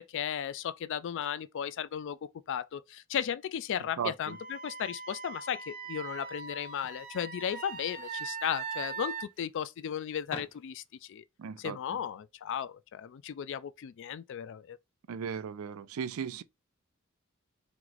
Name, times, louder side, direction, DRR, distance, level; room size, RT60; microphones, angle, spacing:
voice 1, 0.0-2.2 2.5-11.2 11.6-14.8, left 9 dB, 60° left, 0.3 m, -35 dB
voice 2, 4.0-4.4 11.4-11.8 15.1-16.4, right 7 dB, 85° right, 0.4 m, -36 dB
Wind instrument woodwind instrument, 4.2-9.3, right 6 dB, 45° right, 0.7 m, -41 dB
sound 1, 5.8-11.2, left 2 dB, 25° left, 0.7 m, -53 dB
3.1 x 2.9 x 3.9 m
head